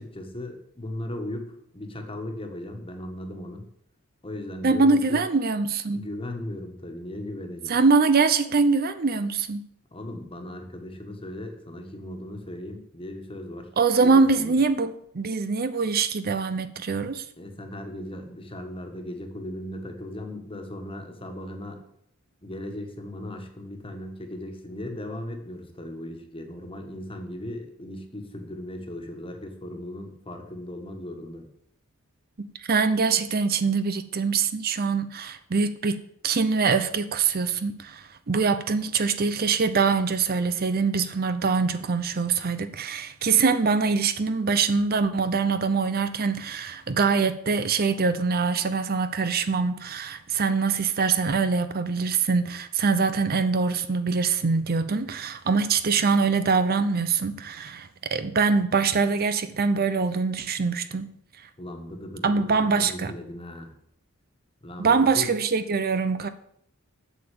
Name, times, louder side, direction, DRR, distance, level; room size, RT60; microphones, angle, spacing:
voice 1, 0.0-3.7 4.2-5.2 5.9-7.7 9.9-13.7 14.0-14.6 17.4-21.8 22.4-31.5 61.6-63.7 64.6-65.3, left 1 dB, 25° left, 1.6 m, -37 dB
voice 2, 4.6-6.0 7.7-9.6 13.8-17.3 32.4-61.1 62.2-63.1 64.8-66.3, right 4 dB, 45° right, 0.6 m, -24 dB
8.2 x 6.9 x 8.6 m
head